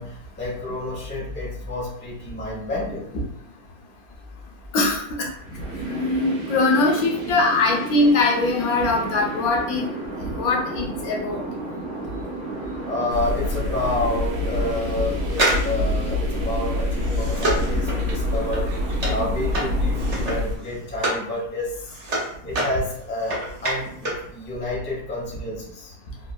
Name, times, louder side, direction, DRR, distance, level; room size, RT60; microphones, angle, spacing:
voice 1, 0.0-3.1 12.8-18.7 19.1-21.9 22.4-25.9, left 2 dB, 10° left, -5 dB, 0.6 m, -29 dB
voice 2, 4.7-5.3 5.9-9.9 10.3-11.4, left 2 dB, 70° left, 0 dB, 1.1 m, -21 dB
sound 1, 5.4-20.3, right 2 dB, 60° right, 1.2 m, -33 dB
sound 2, 13.1-20.6, left 2 dB, 90° right, 1.2 m, -26 dB
sound 3, 15.3-21.3 21.6-24.3 24.6-24.7, right 1 dB, 40° right, 0.5 m, -28 dB
3.6 x 2.3 x 2.2 m, 0.70 s
omnidirectional pair, 1.6 m